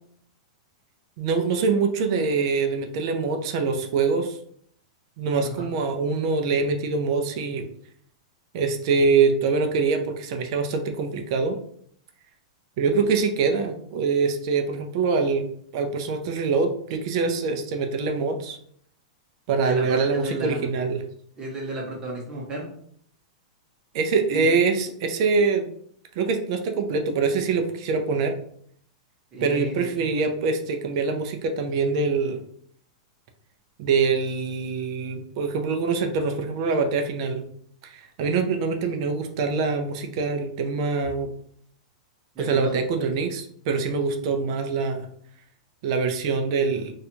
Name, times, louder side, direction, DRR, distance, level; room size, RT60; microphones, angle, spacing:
voice 1, 1.2-4.4 5.2-7.6 8.5-11.5 12.8-18.6 19.5-21.0 23.9-25.7 26.2-28.3 29.4-32.4 33.8-37.4 37.8-41.3 42.4-45.1 45.8-46.9, right 4 dB, 45° right, 5 dB, 0.5 m, -24 dB
voice 2, 19.6-20.7 21.4-22.7 24.3-24.4 29.3-30.2 42.3-42.8, right 2 dB, 20° right, -2 dB, 0.8 m, -33 dB
2.7 x 2.4 x 4.2 m, 0.64 s
supercardioid pair, 160°, 4 cm